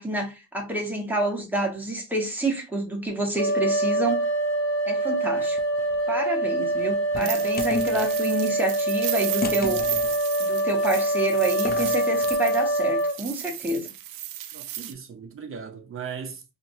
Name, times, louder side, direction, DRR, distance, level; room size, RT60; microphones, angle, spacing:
voice 1, 0.0-4.2 4.8-5.6 6.1-9.8 10.4-13.9, right 2 dB, 5° right, 1.3 m, -28 dB
sound 1, 3.4-13.1, right 1 dB, 60° left, 1.2 m, -25 dB
sound 2, 5.4-6.0 6.7-8.2 9.4-10.2 11.5-12.4, left 4 dB, 30° left, 0.6 m, -33 dB
sound 3, 7.2-14.9, right 12 dB, 80° right, 0.5 m, -35 dB
voice 2, 14.5-16.4, right 6 dB, 40° right, 0.7 m, -38 dB
2.8 x 2.8 x 2.7 m
cardioid pair, 95°, 32 cm